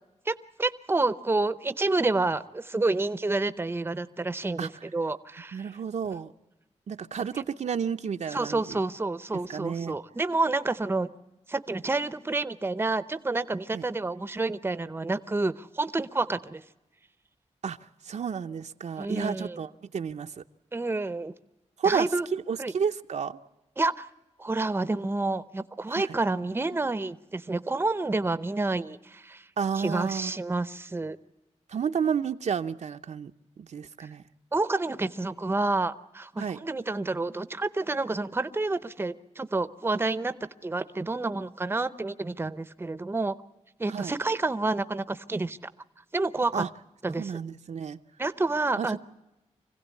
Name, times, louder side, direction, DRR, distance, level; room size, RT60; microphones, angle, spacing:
voice 1, 0.3-5.7 8.3-11.1 11.5-16.6 19.0-19.6 20.7-21.3 21.8-22.3 22.6-22.7 23.8-24.1 24.4-29.4 29.8-31.2 34.5-40.3 40.6-43.3 43.8-45.6 46.1-46.6 47.0-47.3 48.2-49.0, right 2 dB, 20° right, 0.7 m, -29 dB
voice 2, 5.5-6.3 6.9-8.8 9.3-10.0 13.7-13.8 17.6-17.8 18.0-20.4 21.8-23.4 25.9-26.1 29.6-30.3 31.7-34.2 36.4-36.6 43.9-44.1 46.5-46.7 47.2-48.0 48.8-48.9, right 6 dB, 70° right, 0.7 m, -31 dB
25.5 x 16.0 x 8.3 m
wide cardioid pair, 115°, 12 cm